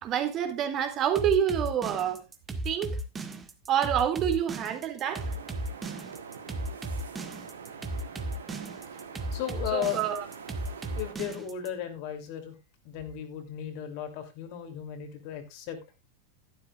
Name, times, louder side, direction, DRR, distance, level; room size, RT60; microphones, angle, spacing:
voice 1, 0.0-2.2 2.6-2.9 3.7-5.3 9.7-10.2, right 9 dB, 35° right, 2.6 m, -27 dB
sound 1, 1.2-11.7, right 2 dB, 15° right, 1.8 m, -35 dB
sound 2, 5.0-11.1, right 6 dB, 70° right, 2.7 m, -44 dB
voice 2, 9.3-10.0 11.0-12.5 12.8-15.8, left 10 dB, 45° left, 3.0 m, -35 dB
13.5 x 12.0 x 2.5 m
figure-of-eight pair, 90°, 0 cm